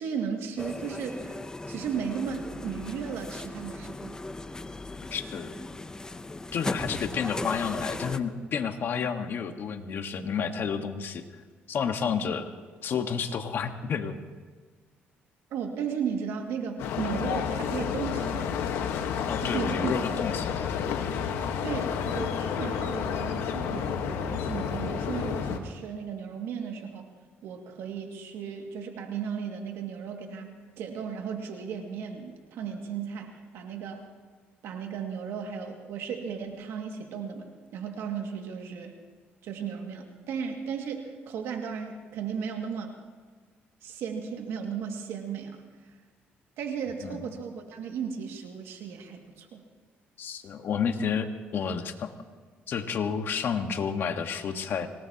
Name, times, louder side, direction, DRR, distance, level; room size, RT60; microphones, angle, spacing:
voice 1, 0.0-1.4 1.7-4.2 15.5-18.5 19.4-20.0 21.6-27.1 27.4-34.1 34.6-38.9 39.4-43.0 43.8-45.6 46.6-49.6, right 7 dB, 80° right, 3 dB, 2.3 m, -35 dB
sound 1, 0.6-8.2, left 2 dB, 15° left, 0.8 m, -37 dB
voice 2, 5.1-5.5 6.5-11.3 11.7-12.5 12.8-14.2 19.3-20.7 47.0-47.2 50.2-52.1 52.7-54.9, left 6 dB, 60° left, 6 dB, 1.5 m, -30 dB
sound 2, 16.8-25.6, left 7 dB, 90° left, 1.4 m, -30 dB
25.5 x 19.0 x 3.0 m, 1.5 s
cardioid pair, 95°, 4 cm